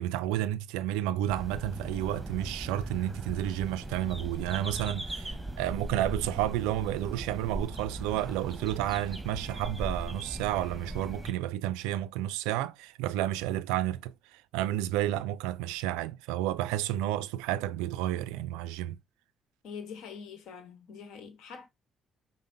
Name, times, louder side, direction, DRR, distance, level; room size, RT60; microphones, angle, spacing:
voice 1, 0.0-19.0, right 13 dB, 85° right, 0.3 m, -31 dB
sound 1, 1.3-11.3, right 1 dB, 10° right, 1.0 m, -39 dB
voice 2, 19.6-21.7, left 6 dB, 75° left, 1.0 m, -44 dB
5.0 x 2.0 x 3.8 m
supercardioid pair, 60°, 0 cm